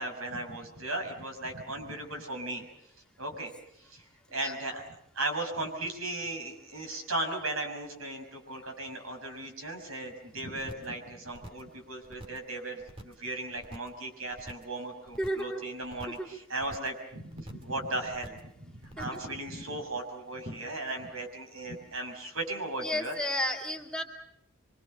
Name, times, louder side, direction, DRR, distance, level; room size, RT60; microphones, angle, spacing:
voice 1, 0.0-2.6 3.2-4.9 5.1-23.2, right 2 dB, 85° right, 4 dB, 6.1 m, -37 dB
sound 1, 10.6-11.0 11.3-11.7 12.0-12.5 12.8-13.3 13.6-14.0 14.3-14.8 15.1-15.5 15.8-16.3 16.6-17.0 17.3-17.8 18.1-18.5 18.8-19.3 19.6-19.7, right 1 dB, 30° right, 2.1 m, -47 dB
voice 2, 15.2-15.6 16.1-16.3 19.0-19.1 22.8-24.0, left 1 dB, 5° left, 0 dB, 2.3 m, -32 dB
26.0 x 24.5 x 6.7 m, 0.75 s
head